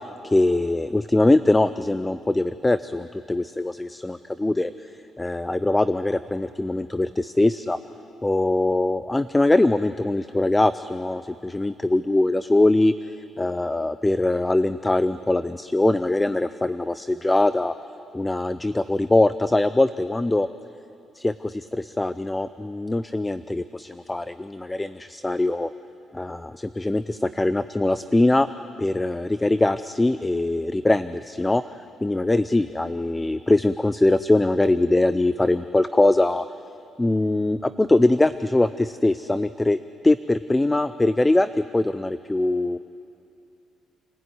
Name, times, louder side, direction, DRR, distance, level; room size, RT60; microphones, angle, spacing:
voice 1, 0.2-4.7 5.2-7.8 8.2-12.9 13.4-17.7 18.1-20.5 21.2-25.7 26.1-28.5 28.8-31.6 32.0-36.5 37.0-42.8, left 2 dB, 15° left, 13 dB, 0.5 m, -22 dB
28.5 x 15.5 x 9.6 m, 2.7 s
cardioid pair, 90°, 0 cm